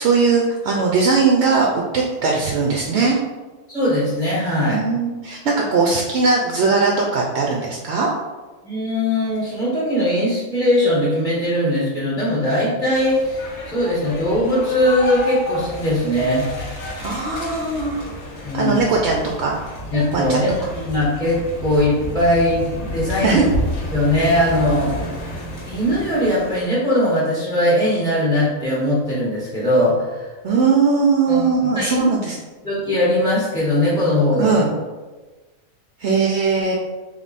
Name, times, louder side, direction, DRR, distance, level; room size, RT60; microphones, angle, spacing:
voice 1, 0.0-3.2 4.7-8.1 17.0-18.1 18.5-19.5 20.1-20.4 23.2-23.5 30.4-32.4 34.4-34.7 36.0-36.7, right 4 dB, 65° right, -1 dB, 0.7 m, -19 dB
voice 2, 3.7-4.8 8.6-16.5 18.4-18.8 19.9-23.4 23.9-24.9 25.6-30.3 31.3-32.0 32.6-34.5, left 1 dB, 5° left, -7 dB, 0.9 m, -20 dB
sound 1, 12.9-26.6, equal, 85° left, 1.4 m, -31 dB
3.5 x 3.2 x 4.0 m, 1.2 s
omnidirectional pair, 1.5 m